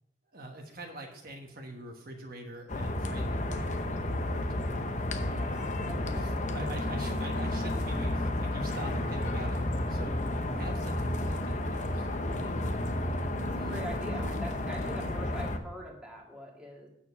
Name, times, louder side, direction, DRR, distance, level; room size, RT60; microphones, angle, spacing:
voice 1, 0.3-3.7 4.1-4.8 6.1-10.2 10.5-12.9 13.5-13.9, right 1 dB, 50° right, 2 dB, 1.2 m, -44 dB
sound 1, 2.7-15.6, left 1 dB, 40° left, 0.8 m, -32 dB
voice 2, 5.3-6.7 13.4-16.9, equal, 5° right, -2 dB, 1.8 m, -44 dB
8.9 x 6.9 x 6.0 m, 0.82 s
head